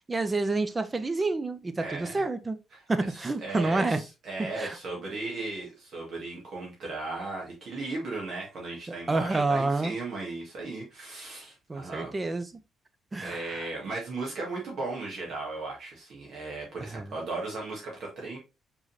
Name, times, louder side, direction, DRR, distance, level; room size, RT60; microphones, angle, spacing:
voice 1, 0.1-2.6 2.9-4.0 4.6-4.8 9.1-10.0 11.7-12.6 13.1-13.7 16.8-17.1, right 3 dB, 25° right, 0.6 m, -28 dB
voice 2, 1.8-2.3 2.7-2.8 3.1-12.1 13.2-18.4, right 3 dB, 65° right, 1.8 m, -36 dB
4.9 x 3.8 x 2.6 m
cardioid pair, 90°, 0 cm